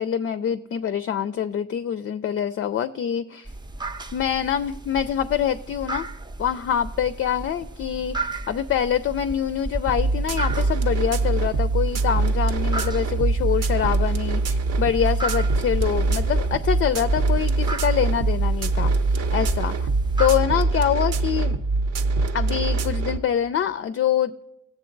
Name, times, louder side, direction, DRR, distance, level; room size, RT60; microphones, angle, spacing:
voice 1, 0.0-3.5 4.1-6.1 6.4-8.2 8.5-19.7 20.2-21.6 22.3-24.5, left 9 dB, 45° left, 11 dB, 0.4 m, -25 dB
sound 1, 3.5-20.3, right 2 dB, 15° right, 0.5 m, -34 dB
sound 2, 9.9-23.2, right 3 dB, 55° right, 0.7 m, -23 dB
16.5 x 7.3 x 3.8 m, 0.89 s
cardioid pair, 90°, 30 cm